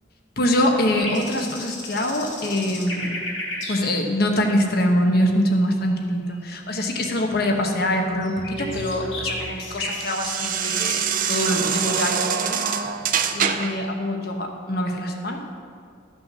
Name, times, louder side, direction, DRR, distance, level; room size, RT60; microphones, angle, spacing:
voice 1, 0.4-3.1 3.7-12.6 13.3-15.4, left 1 dB, 55° left, 2 dB, 1.2 m, -24 dB
sound 1, 0.9-3.8 4.0-4.1 4.4-4.7 5.0-5.1 5.5-5.6 5.9-6.0 6.3-6.4 6.7-6.9 7.2-7.4 7.7-7.9 8.2-10.1, left 2 dB, 90° left, 2.4 m, -33 dB
sound 2, 8.0-13.9, right 7 dB, 45° right, 0.5 m, -26 dB
13.0 x 6.0 x 6.2 m, 2.3 s
head